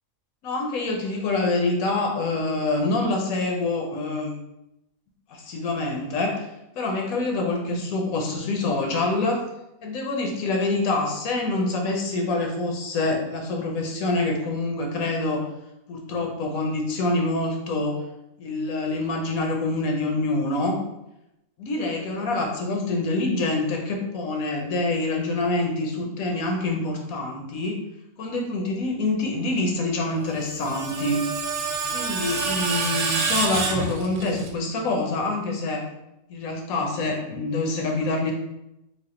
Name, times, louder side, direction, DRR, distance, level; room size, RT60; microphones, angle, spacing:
voice 1, 0.4-4.3 5.3-6.5 6.8-9.4 9.8-15.4 15.9-18.0 18.4-20.8 21.6-27.8 28.2-31.2 31.9-35.8 36.3-38.3, left 2 dB, 75° left, 1 dB, 1.1 m, -26 dB
Screech, 30.2-34.5, right 4 dB, 65° right, 0.9 m, -27 dB
3.5 x 2.4 x 3.7 m, 0.88 s
omnidirectional pair, 1.5 m